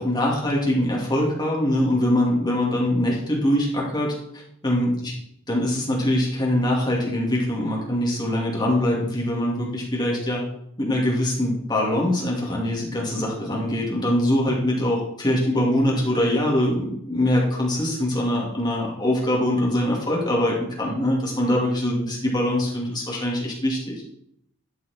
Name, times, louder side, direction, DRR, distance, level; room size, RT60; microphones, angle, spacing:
voice 1, 0.0-5.1 5.5-10.4 10.8-24.0, left 1 dB, 20° left, -3 dB, 2.4 m, -23 dB
11.5 x 4.5 x 4.3 m, 0.71 s
head